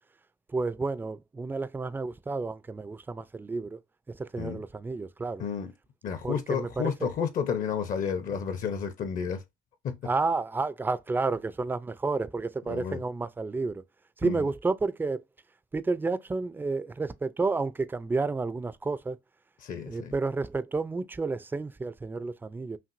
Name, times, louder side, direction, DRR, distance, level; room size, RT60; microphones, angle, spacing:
voice 1, 0.5-3.8 4.1-5.4 6.2-7.1 10.0-13.8 14.2-15.2 15.7-19.2 19.9-22.8, right 3 dB, 10° right, 0.4 m, -31 dB
voice 2, 6.0-9.4 9.8-10.0 12.7-13.0 14.2-14.5 19.6-20.1, left 7 dB, 50° left, 0.7 m, -31 dB
5.8 x 2.5 x 2.5 m
cardioid pair, 105°, 17 cm